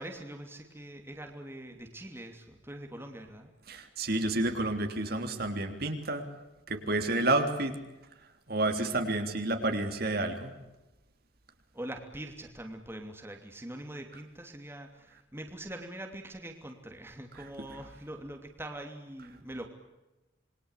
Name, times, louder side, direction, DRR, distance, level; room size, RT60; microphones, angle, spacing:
voice 1, 0.0-3.5 11.7-19.7, right 1 dB, 10° right, 4 dB, 2.8 m, -43 dB
voice 2, 3.7-6.2 6.7-7.7 8.5-10.5, right 2 dB, 55° right, 6 dB, 3.4 m, -30 dB
27.5 x 23.0 x 8.4 m, 1.0 s
head